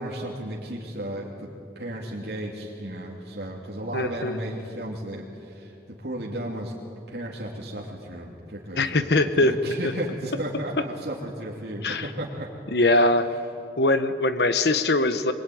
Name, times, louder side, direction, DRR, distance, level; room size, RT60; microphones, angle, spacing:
voice 1, 0.0-6.7 7.1-12.5 12.8-13.1, right 1 dB, 70° right, -3 dB, 2.8 m, -34 dB
voice 2, 3.9-4.4 8.8-9.5 11.8-12.1 12.7-13.3 13.8-15.3, left 2 dB, 70° left, 10 dB, 1.1 m, -21 dB
25.0 x 22.0 x 9.3 m, 2.6 s
head